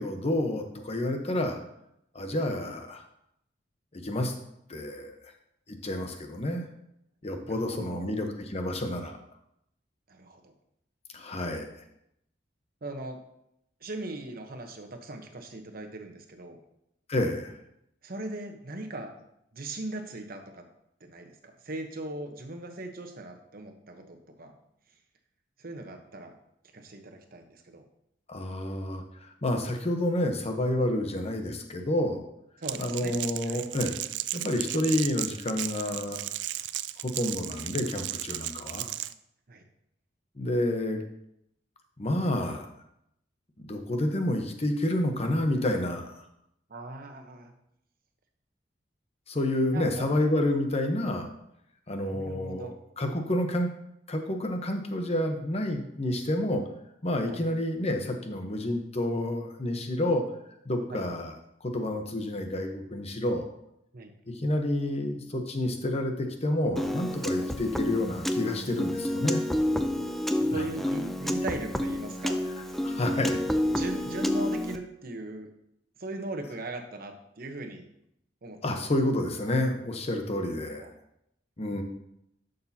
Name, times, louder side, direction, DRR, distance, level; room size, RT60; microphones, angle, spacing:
voice 1, 0.0-1.6 2.1-3.0 3.9-4.3 4.7-5.2 5.7-6.6 7.2-9.2 11.1-11.7 17.1-17.6 28.3-32.2 32.8-34.0 34.3-36.3 37.0-38.9 40.4-41.0 42.0-42.7 43.6-46.2 49.3-51.3 51.9-53.7 54.1-56.6 57.0-60.2 60.6-61.4 61.6-63.5 64.3-69.4 70.5-70.6 72.8-73.4 78.6-80.9 81.6-81.8, left 1 dB, 35° left, 5 dB, 1.0 m, -29 dB
voice 2, 7.4-8.1 10.1-10.5 12.8-13.2 13.8-16.6 18.0-19.1 19.5-20.6 21.0-24.6 25.6-26.3 26.7-27.8 32.6-33.2 33.5-33.6 39.5-39.6 46.7-47.5 49.7-50.2 52.0-52.7 57.3-57.4 60.9-61.0 63.9-64.1 67.4-67.5 70.0-70.1 70.4-72.4 72.7-72.8 73.7-75.5 76.0-77.9 78.4-78.7 80.7-80.9, right 2 dB, 55° right, 5 dB, 1.0 m, -39 dB
Crackle, 32.6-39.1, right 14 dB, 70° right, 0.4 m, -35 dB
Piano, 66.8-74.8, left 1 dB, ahead, 0.5 m, -29 dB
11.0 x 6.6 x 2.8 m, 0.79 s
head